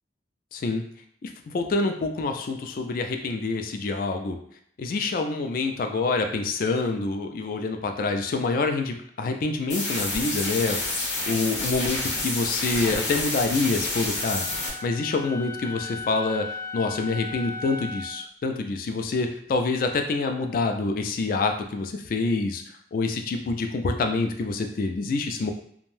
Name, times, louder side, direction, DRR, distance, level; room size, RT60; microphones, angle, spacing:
voice 1, 0.5-0.8 1.2-4.4 4.8-11.0 11.3-14.5 14.8-22.6 22.9-25.5, left 3 dB, 50° left, 5 dB, 0.3 m, -27 dB
sound 1, 9.7-14.7, left 2 dB, 75° left, 0.8 m, -29 dB
Wind instrument woodwind instrument, 14.1-18.3, left 3 dB, 80° right, 0.4 m, -37 dB
2.5 x 2.1 x 3.1 m, 0.66 s
head